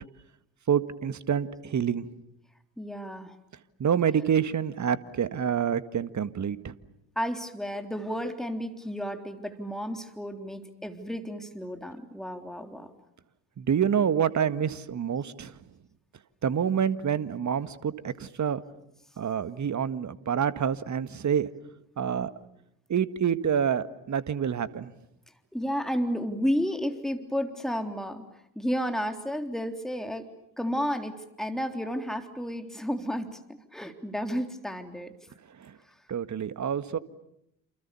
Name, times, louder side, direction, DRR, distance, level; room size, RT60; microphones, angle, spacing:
voice 1, 0.7-2.1 3.8-6.7 13.6-15.6 16.4-18.6 19.2-21.5 22.0-22.3 22.9-24.9 35.6-35.8 36.1-37.0, right 8 dB, 35° right, 13 dB, 1.8 m, -27 dB
voice 2, 2.8-3.4 7.2-12.9 25.5-28.2 28.6-30.3 30.6-35.2 35.9-36.0, equal, ahead, 6 dB, 3.6 m, -32 dB
29.0 x 29.0 x 7.1 m, 0.81 s
figure-of-eight pair, 50°, 46 cm